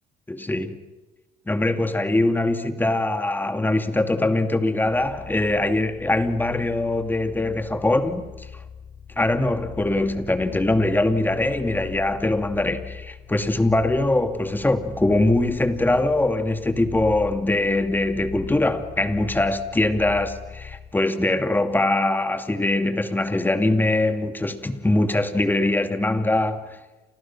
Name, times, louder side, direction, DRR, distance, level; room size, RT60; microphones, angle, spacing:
voice 1, 0.3-0.8 1.5-8.5 9.2-26.8, left 2 dB, 10° left, 2.5 m, -22 dB
sound 1, 4.9-21.0, left 7 dB, 45° left, 2.8 m, -40 dB
29.5 x 28.0 x 6.1 m
cardioid pair, 110°, 17 cm